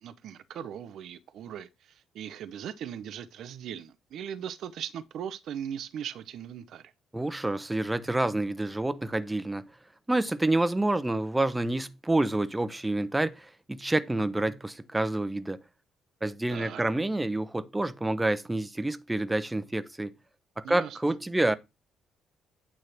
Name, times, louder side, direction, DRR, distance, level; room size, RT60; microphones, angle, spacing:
voice 1, 0.0-6.9 16.5-16.8 20.6-21.0, right 9 dB, 55° right, 0.5 m, -39 dB
voice 2, 7.1-9.7 10.1-15.6 16.2-20.1 20.6-21.5, right 2 dB, 15° right, 0.6 m, -28 dB
9.0 x 3.1 x 6.5 m
figure-of-eight pair, 45°, 0 cm